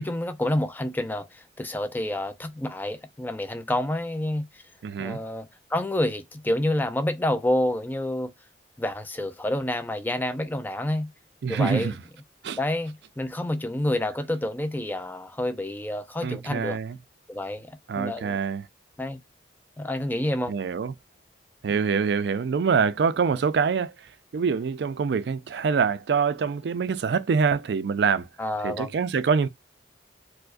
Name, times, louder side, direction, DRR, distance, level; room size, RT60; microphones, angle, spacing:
voice 1, 0.0-4.6 5.0-8.3 8.8-11.1 11.5-11.9 12.6-16.8 17.3-18.4 19.0-19.2 19.8-20.6 21.7-21.8 23.3-23.4 28.4-28.9, left 1 dB, 10° left, 0.3 m, -28 dB
voice 2, 4.8-5.2 11.4-11.9 12.4-12.6 16.2-17.0 17.9-18.7 20.5-20.9 21.6-23.9 24.3-28.3 28.6-29.5, right 5 dB, 70° right, 0.3 m, -25 dB
4.5 x 2.1 x 2.4 m
head